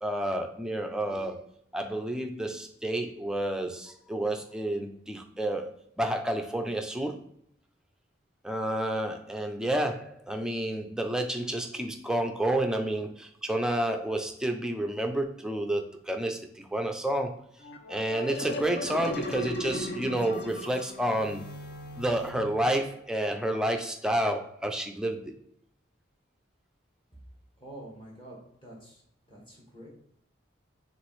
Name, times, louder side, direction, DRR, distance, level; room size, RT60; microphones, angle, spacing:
voice 1, 0.0-1.4 1.7-7.2 8.4-17.4 17.9-21.4 22.0-25.3, right 1 dB, 5° right, 5 dB, 0.4 m, -30 dB
sound 1, 17.6-23.0, left 1 dB, 55° left, 0.7 m, -37 dB
voice 2, 27.6-29.0 29.3-29.9, right 1 dB, 25° left, -3 dB, 1.4 m, -47 dB
6.2 x 2.5 x 3.2 m, 0.72 s
head